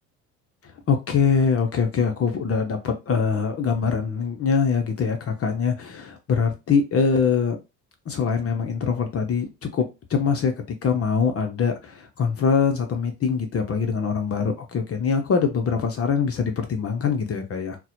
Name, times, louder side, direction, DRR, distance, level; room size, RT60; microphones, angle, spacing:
voice 1, 0.9-7.6 8.1-17.8, left 6 dB, 30° left, 0.7 m, -23 dB
3.9 x 2.2 x 2.7 m
hypercardioid pair, 60°, 45 cm